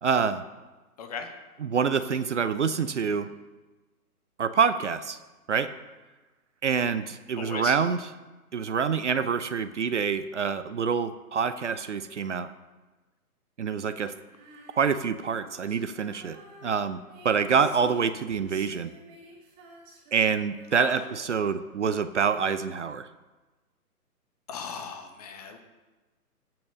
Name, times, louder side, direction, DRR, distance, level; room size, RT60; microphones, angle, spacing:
voice 1, 0.0-0.4 1.6-3.3 4.4-5.2 5.5-5.7 6.6-8.0 8.5-12.5 13.6-14.1 14.8-18.9 20.1-23.1, right 6 dB, 50° right, 12 dB, 0.7 m, -26 dB
voice 2, 7.4-7.8 20.7-21.0 24.5-25.6, left 6 dB, 25° left, 5 dB, 1.1 m, -37 dB
Female singing, 14.3-21.7, right 1 dB, 15° right, 1.7 m, -50 dB
14.5 x 6.1 x 6.3 m, 1.2 s
figure-of-eight pair, 140°, 46 cm